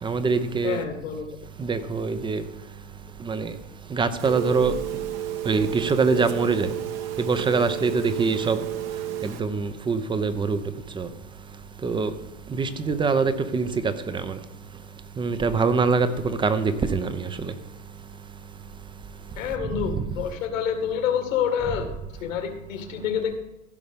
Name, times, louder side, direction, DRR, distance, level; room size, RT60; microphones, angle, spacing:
voice 1, 0.0-0.8 1.6-2.4 3.2-3.5 3.9-4.7 5.5-6.7 7.2-8.6 9.2-10.6 11.0-11.1 11.8-12.1 12.5-14.4 15.2-17.5 19.9-20.0, right 4 dB, 10° right, 0.7 m, -24 dB
voice 2, 0.6-1.5 19.4-21.9 22.2-23.4, left 8 dB, 75° left, 2.2 m, -28 dB
Telephone, 4.2-9.4, right 11 dB, 40° right, 1.1 m, -32 dB
15.5 x 5.3 x 5.3 m
hypercardioid pair, 110°, 40 cm